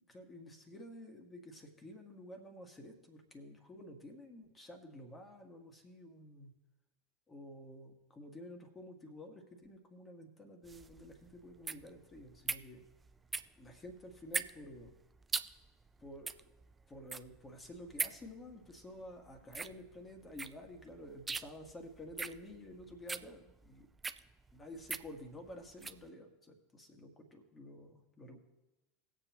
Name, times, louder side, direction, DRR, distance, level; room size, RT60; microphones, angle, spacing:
voice 1, 0.1-6.5 7.3-12.8 13.6-14.9 16.0-16.5 16.9-23.9 24.5-28.4, left 1 dB, 20° left, 3 dB, 2.0 m, -51 dB
sound 1, 10.6-26.1, right 4 dB, 20° right, 0.4 m, -42 dB
19.5 x 7.6 x 3.1 m, 1.0 s
figure-of-eight pair, 80°, 0 cm